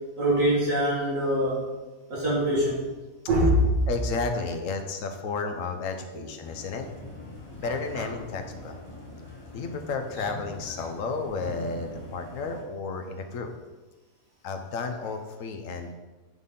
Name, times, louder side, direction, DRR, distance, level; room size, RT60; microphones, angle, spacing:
voice 1, 0.2-1.6 2.1-2.8 3.3-3.7, equal, 65° right, -7 dB, 2.1 m, -23 dB
voice 2, 3.9-6.9 7.6-8.8 9.5-13.5 14.4-15.9, left 4 dB, 70° left, 6 dB, 1.2 m, -32 dB
sound 1, 6.4-12.6, left 2 dB, 25° left, 0.9 m, -43 dB
11.0 x 4.1 x 3.7 m, 1.2 s
omnidirectional pair, 1.5 m